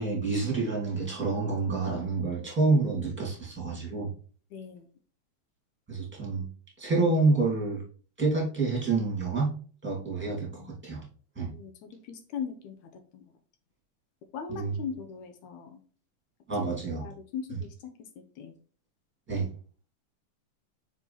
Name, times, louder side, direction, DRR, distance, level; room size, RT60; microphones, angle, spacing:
voice 1, 0.0-4.1 5.9-6.5 6.8-7.8 8.2-9.5 9.8-11.0 11.4-11.5 14.5-14.7 16.5-17.1 19.3-19.5, right 3 dB, 5° right, -3 dB, 2.5 m, -28 dB
voice 2, 4.5-4.9 10.2-10.7 11.5-13.2 14.3-15.8 16.6-18.1 18.4-18.5, left 7 dB, 75° left, 6 dB, 2.0 m, -40 dB
5.5 x 4.7 x 4.2 m, 0.41 s
omnidirectional pair, 3.6 m